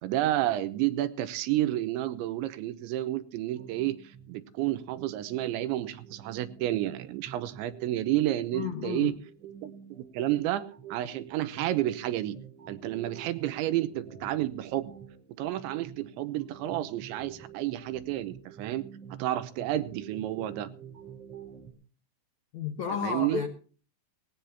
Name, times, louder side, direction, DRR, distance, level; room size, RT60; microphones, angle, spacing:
voice 1, 0.0-4.0 4.3-9.1 9.6-12.4 12.7-14.9 15.4-18.9 19.1-20.7 23.0-23.4, right 14 dB, 85° right, 3.2 m, -30 dB
sound 1, 3.6-21.7, right 8 dB, 35° right, 4.6 m, -49 dB
voice 2, 8.5-9.2 22.5-23.5, left 7 dB, 70° left, 1.8 m, -32 dB
19.5 x 16.0 x 2.8 m
omnidirectional pair, 5.3 m